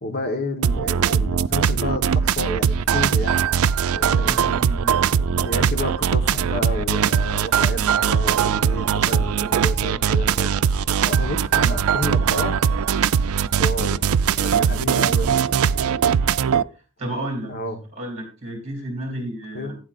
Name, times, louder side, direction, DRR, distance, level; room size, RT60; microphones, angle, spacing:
voice 1, 0.0-3.6 3.9-4.4 5.1-10.5 11.0-12.6 13.6-14.0 14.3-15.4 17.5-17.8 19.5-19.7, left 1 dB, 50° left, 1.3 m, -30 dB
sound 1, 0.6-16.6, right 7 dB, 85° right, 0.4 m, -20 dB
voice 2, 4.2-5.0 16.7-17.5 17.9-19.8, right 1 dB, 30° right, 2.8 m, -32 dB
15.5 x 9.3 x 2.5 m
head